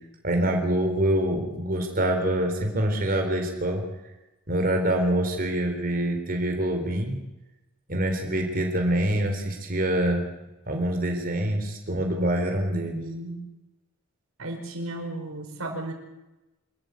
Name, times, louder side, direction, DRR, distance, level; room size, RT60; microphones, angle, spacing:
voice 1, 0.2-3.8 4.5-7.2 7.9-10.3 10.7-13.0, right 1 dB, 45° right, 3 dB, 4.0 m, -25 dB
voice 2, 12.8-13.4 14.4-15.9, right 1 dB, 85° right, 4 dB, 5.0 m, -34 dB
26.0 x 14.0 x 9.5 m, 1.0 s
head